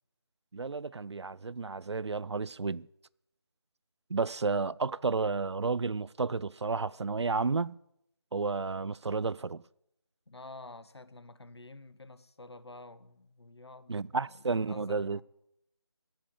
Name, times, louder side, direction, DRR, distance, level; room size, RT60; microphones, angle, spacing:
voice 1, 0.5-2.9 4.1-7.8 8.3-9.6 13.9-15.2, right 4 dB, 85° right, 0.4 m, -32 dB
voice 2, 10.3-15.2, left 2 dB, 70° left, 1.0 m, -50 dB
17.0 x 7.7 x 7.2 m
figure-of-eight pair, 170°, 14 cm